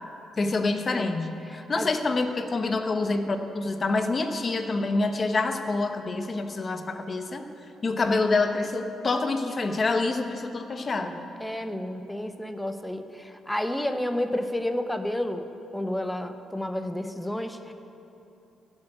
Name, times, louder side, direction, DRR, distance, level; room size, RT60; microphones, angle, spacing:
voice 1, 0.4-7.4 7.8-11.1, left 3 dB, 30° left, 7 dB, 0.9 m, -27 dB
voice 2, 1.5-1.9 11.4-17.7, left 1 dB, 5° left, 8 dB, 0.7 m, -31 dB
14.0 x 7.3 x 8.0 m, 2.9 s
cardioid pair, 125°, 0 cm